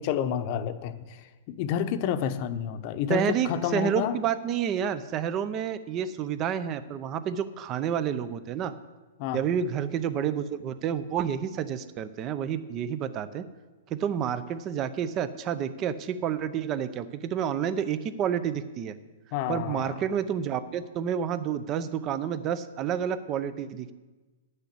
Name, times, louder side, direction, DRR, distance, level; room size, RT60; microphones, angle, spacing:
voice 1, 0.0-4.1 9.2-9.4 19.3-20.0, left 9 dB, 45° left, 9 dB, 0.8 m, -30 dB
voice 2, 3.1-8.7 9.3-13.4 13.9-19.0 19.5-23.9, right 8 dB, 30° right, 13 dB, 0.7 m, -29 dB
9.8 x 6.7 x 8.4 m, 1.2 s
hypercardioid pair, 140°, 0 cm